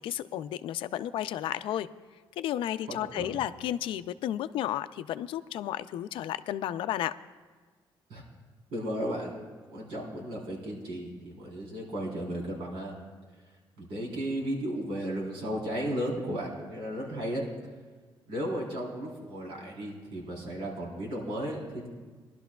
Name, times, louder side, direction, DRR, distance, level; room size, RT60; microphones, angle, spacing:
voice 1, 0.0-1.9 2.4-7.1, left 12 dB, 80° left, 13 dB, 0.4 m, -32 dB
voice 2, 2.9-3.3 8.1-8.2 8.7-9.4 9.7-12.9 13.8-17.4 18.3-21.9, equal, 90° right, -3 dB, 3.8 m, -34 dB
21.0 x 11.5 x 2.3 m, 1.4 s
cardioid pair, 155°, 9 cm